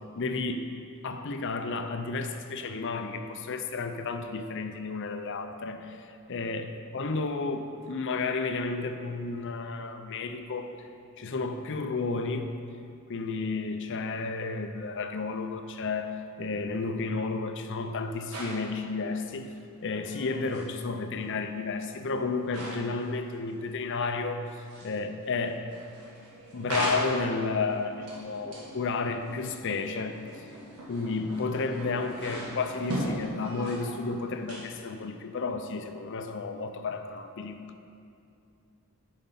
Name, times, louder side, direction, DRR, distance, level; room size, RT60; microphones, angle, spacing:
voice 1, 0.2-0.7 1.0-10.7 11.2-12.5 13.1-19.5 19.8-25.7 26.5-30.2 30.9-37.6, left 4 dB, 55° left, 7 dB, 0.6 m, -32 dB
sound 1, 18.3-18.7 20.0-20.6 21.3-21.4 22.5-23.0 23.3-23.7 24.0-25.0 25.3-34.1 34.3-35.0, equal, 85° right, 1.8 m, -38 dB
9.1 x 5.4 x 5.6 m, 2.6 s
head